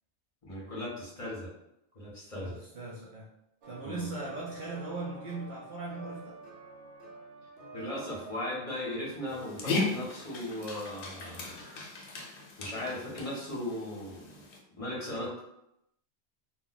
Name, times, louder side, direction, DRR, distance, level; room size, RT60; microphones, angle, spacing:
voice 1, 0.4-1.5 1.9-2.6 3.8-4.1 7.7-11.6 12.6-14.4 14.8-15.4, left 1 dB, 35° left, -6 dB, 0.8 m, -37 dB
voice 2, 2.3-3.3 3.6-6.4, right 3 dB, 55° right, -4 dB, 0.6 m, -39 dB
sound 1, 3.6-11.2, right 3 dB, 85° right, 0.9 m, -49 dB
Dog, 9.3-14.6, left 3 dB, 75° left, 0.9 m, -37 dB
2.2 x 2.2 x 3.9 m, 0.82 s
omnidirectional pair, 1.2 m